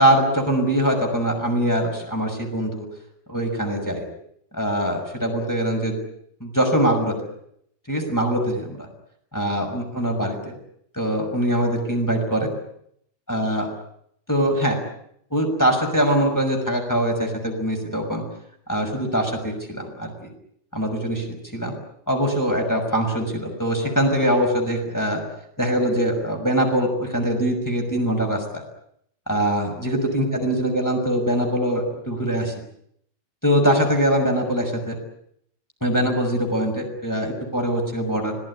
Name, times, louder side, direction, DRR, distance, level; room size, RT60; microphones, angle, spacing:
voice 1, 0.0-2.8 3.3-4.0 4.5-6.0 6.4-7.1 7.9-8.9 9.3-10.5 10.9-12.5 13.3-13.7 14.3-14.8 15.3-18.2 18.7-20.3 20.7-21.8 22.1-25.2 25.6-28.6 29.3-32.5 33.4-35.0 35.8-38.4, equal, 5° left, 1 dB, 5.9 m, -22 dB
25.5 x 18.5 x 10.0 m, 0.72 s
omnidirectional pair, 4.6 m